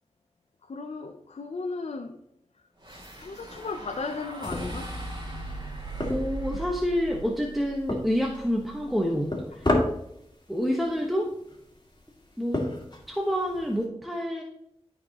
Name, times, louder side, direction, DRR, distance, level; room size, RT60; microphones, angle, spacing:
voice 1, 0.6-2.2 3.2-4.9, left 3 dB, 80° left, 0.6 m, -35 dB
sound 1, 2.8-9.2, right 2 dB, 40° right, 2.9 m, -39 dB
sound 2, 4.5-13.9, left 1 dB, 40° left, 2.0 m, -34 dB
voice 2, 6.1-9.7 10.5-11.3 12.4-12.7 13.1-14.4, equal, ahead, 1.2 m, -28 dB
12.5 x 5.0 x 2.9 m
wide cardioid pair, 45°, 11 cm